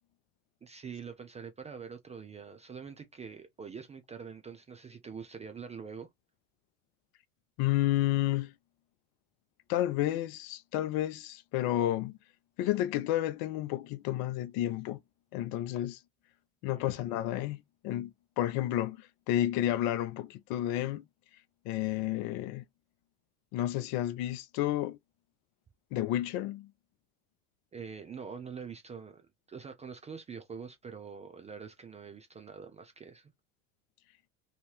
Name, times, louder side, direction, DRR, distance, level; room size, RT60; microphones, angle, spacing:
voice 1, 0.6-6.1 16.7-17.0 27.7-33.3, right 6 dB, 15° right, 0.3 m, -45 dB
voice 2, 7.6-8.5 9.7-12.2 12.6-15.0 15.3-16.0 16.6-21.0 21.7-22.6 23.5-25.0 25.9-26.7, left 14 dB, 55° left, 0.6 m, -31 dB
2.7 x 2.4 x 3.0 m
hypercardioid pair, 80°, 45 cm